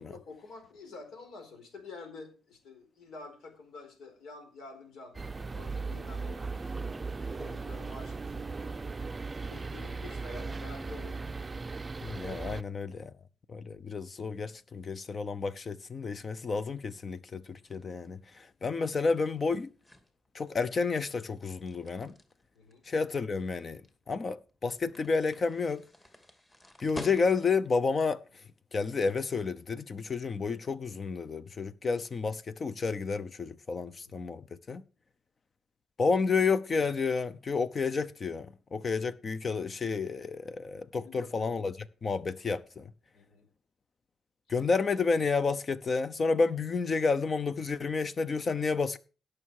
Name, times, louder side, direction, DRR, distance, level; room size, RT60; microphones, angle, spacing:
voice 1, 0.1-8.7 9.2-11.4 22.5-22.8 34.0-34.1 41.0-41.3 43.1-43.5, left 3 dB, 75° left, 4.4 m, -49 dB
sound 1, 5.1-12.6, right 4 dB, 25° right, 0.5 m, -37 dB
voice 2, 12.0-13.1 13.5-19.7 20.3-22.1 22.8-23.8 24.1-25.8 26.8-28.4 28.7-34.8 36.0-42.9 44.5-49.0, left 4 dB, 40° left, 0.8 m, -30 dB
sound 2, 17.3-27.7, left 1 dB, 15° left, 2.4 m, -50 dB
17.0 x 6.5 x 4.8 m
cardioid pair, 90°, 0 cm